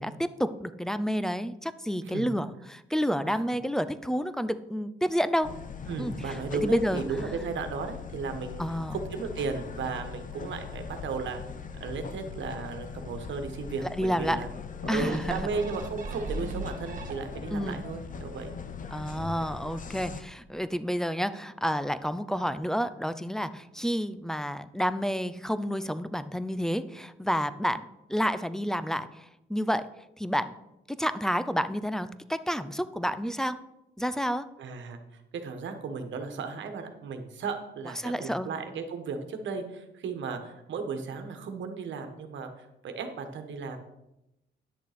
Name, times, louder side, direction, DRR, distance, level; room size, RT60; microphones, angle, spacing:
voice 1, 0.0-5.5 6.0-7.0 8.6-9.0 14.0-14.4 14.9-15.4 17.5-17.8 18.9-29.8 30.2-30.6 30.9-33.6 34.0-34.5 38.0-38.5, equal, ahead, 13 dB, 0.5 m, -30 dB
sound 1, 5.4-20.2, left 6 dB, 40° left, 0.9 m, -41 dB
voice 2, 5.9-8.6 8.9-11.4 11.8-14.5 14.8-18.5 34.6-43.8, right 5 dB, 70° right, 6 dB, 1.4 m, -35 dB
sound 2, 14.9-17.6 18.1-18.2, right 2 dB, 40° right, 1.8 m, -37 dB
10.0 x 6.6 x 5.1 m, 0.89 s
cardioid pair, 90°, 20 cm